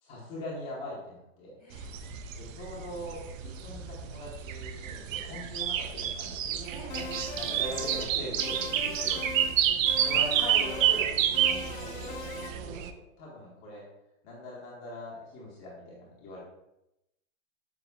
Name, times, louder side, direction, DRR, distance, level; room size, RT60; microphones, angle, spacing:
voice 1, 0.0-1.6 2.4-6.6 7.3-9.2 10.0-12.9 13.2-13.8 14.2-16.4, left 1 dB, 30° left, -4 dB, 1.0 m, -41 dB
voice 2, 1.6-2.0 5.2-5.4 6.6-7.4 9.0-9.4, equal, 10° right, -6 dB, 1.1 m, -50 dB
sound 1, 1.7-12.9, right 10 dB, 75° right, 0.5 m, -29 dB
sound 2, 6.9-8.1 8.4-9.6 9.9-11.0 11.3-12.5, left 4 dB, 75° left, 1.3 m, -40 dB
7.1 x 2.4 x 2.2 m, 0.88 s
hypercardioid pair, 150°, 40 cm